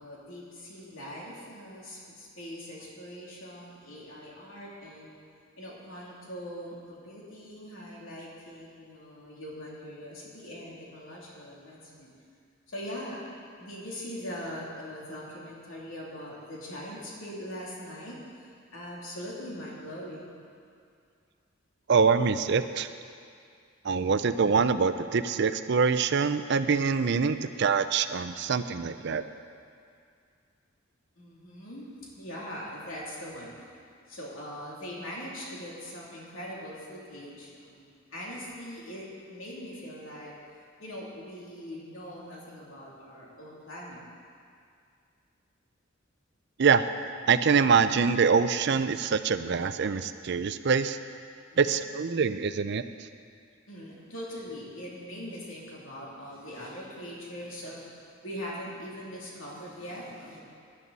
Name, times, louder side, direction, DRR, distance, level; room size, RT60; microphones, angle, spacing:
voice 1, 0.0-5.1 5.6-12.1 12.7-13.2 13.6-20.4 31.2-33.7 34.1-40.3 40.8-44.0 51.5-51.8 53.7-60.4, equal, 80° left, -5 dB, 3.0 m, -41 dB
voice 2, 21.9-22.9 23.8-29.2 46.6-46.9 47.3-51.0 51.6-53.1, right 5 dB, 55° right, 11 dB, 0.5 m, -25 dB
16.5 x 11.0 x 4.1 m, 2.3 s
head